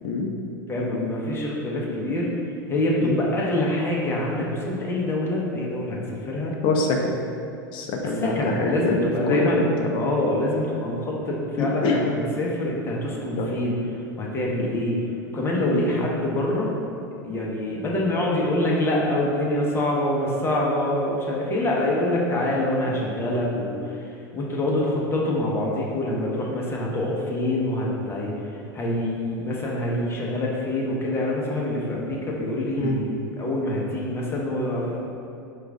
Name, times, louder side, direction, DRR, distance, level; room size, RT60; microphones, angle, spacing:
voice 1, 0.7-2.3 2.7-6.5 8.2-9.7 10.0-13.8 14.2-15.0 15.3-16.7 17.2-35.0, left 1 dB, 20° left, -3 dB, 0.9 m, -25 dB
voice 2, 6.6-7.2 7.7-9.6 9.8-10.1 11.6-12.1 13.4-13.5 15.7-15.9 32.8-33.0, left 3 dB, 45° left, 1 dB, 0.5 m, -24 dB
4.7 x 2.4 x 3.7 m, 2.6 s
hypercardioid pair, 95°, 12 cm